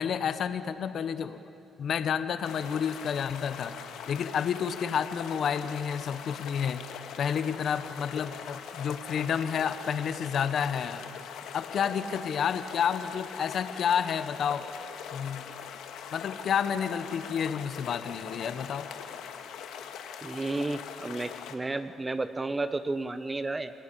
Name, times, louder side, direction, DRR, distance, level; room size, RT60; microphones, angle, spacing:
voice 1, 0.0-1.4 1.8-3.7 4.1-6.8 7.2-11.1 11.5-14.7 15.1-15.5 16.1-18.9, left 7 dB, 60° left, 11 dB, 1.1 m, -30 dB
Calm mountain stream, 2.4-21.6, left 7 dB, 85° left, 1.7 m, -42 dB
voice 2, 20.2-23.7, right 2 dB, 20° right, 11 dB, 0.9 m, -32 dB
28.0 x 19.0 x 8.5 m, 2.9 s
cardioid pair, 90°, 0 cm